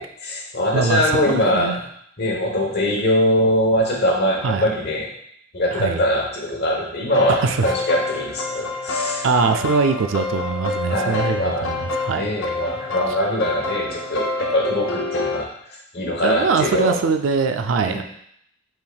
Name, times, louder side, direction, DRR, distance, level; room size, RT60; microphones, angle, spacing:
voice 1, 0.0-1.7 2.2-5.1 5.5-9.5 10.9-11.9 12.2-15.5 15.9-17.0 17.8-18.0, left 1 dB, 60° left, -1 dB, 1.0 m, -22 dB
voice 2, 0.7-1.8 4.4-4.7 5.7-6.0 7.3-7.7 8.9-12.3 16.2-18.0, right 5 dB, 70° right, 7 dB, 0.4 m, -22 dB
sound 1, 7.1-15.4, left 3 dB, 90° left, 0.7 m, -27 dB
5.4 x 3.6 x 2.3 m, 0.70 s
head